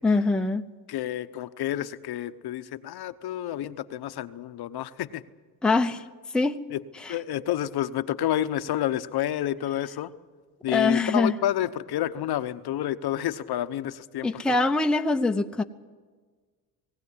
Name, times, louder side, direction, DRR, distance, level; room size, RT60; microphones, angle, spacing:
voice 1, 0.0-0.6 5.6-6.0 6.3-6.6 7.0-7.2 10.7-11.4 14.2-15.6, left 3 dB, ahead, 5 dB, 0.7 m, -23 dB
voice 2, 0.9-5.2 6.7-6.8 7.1-10.1 10.6-14.6, left 12 dB, 55° left, 11 dB, 0.9 m, -29 dB
20.0 x 16.0 x 9.7 m, 1.5 s
cardioid pair, 100°, 45 cm